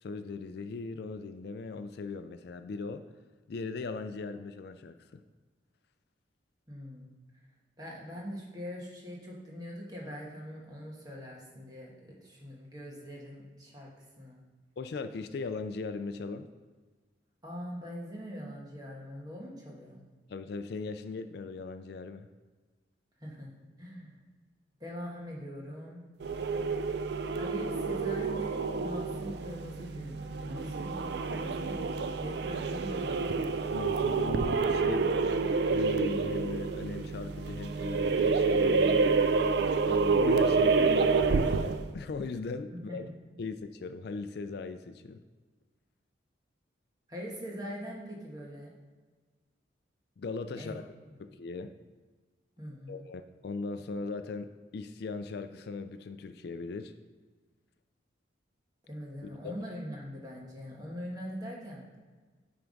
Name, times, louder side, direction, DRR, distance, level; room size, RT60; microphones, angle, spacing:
voice 1, 0.0-3.0 3.5-5.2 14.8-16.5 20.3-22.3 33.7-35.4 35.7-39.1 39.8-43.1 43.4-45.2 50.2-50.9 51.2-51.7 52.9-56.9 59.2-59.5, left 4 dB, 55° left, 9 dB, 0.3 m, -39 dB
voice 2, 6.7-7.1 7.8-14.4 17.4-20.0 23.2-23.5 23.8-24.2 24.8-26.0 27.3-31.8 32.2-33.4 42.7-43.0 47.1-48.7 50.5-50.8 52.6-53.0 58.8-61.8, equal, 20° right, -3 dB, 1.5 m, -42 dB
sound 1, 26.2-41.9, right 4 dB, 60° right, 0.4 m, -28 dB
9.1 x 3.5 x 5.2 m, 1.4 s
head